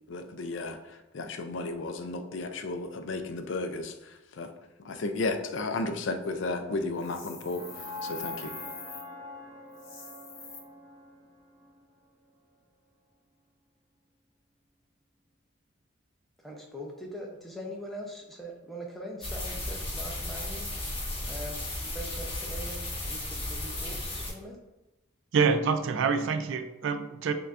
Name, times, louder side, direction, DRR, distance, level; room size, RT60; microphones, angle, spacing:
voice 1, 0.1-4.5 4.8-7.6 8.0-8.5, left 3 dB, 60° left, 7 dB, 0.4 m, -33 dB
sound 1, 6.2-12.3, left 2 dB, 35° right, 0.8 m, -44 dB
sound 2, 7.0-9.0 9.7-10.6, left 5 dB, 80° left, 0.9 m, -44 dB
voice 2, 16.4-21.0 21.3-24.6, equal, ahead, -1 dB, 0.6 m, -42 dB
sound 3, 19.2-24.3, left 1 dB, 25° left, 0.9 m, -35 dB
voice 3, 25.3-27.3, right 5 dB, 60° right, 10 dB, 0.3 m, -26 dB
6.6 x 2.2 x 2.5 m, 1.0 s
head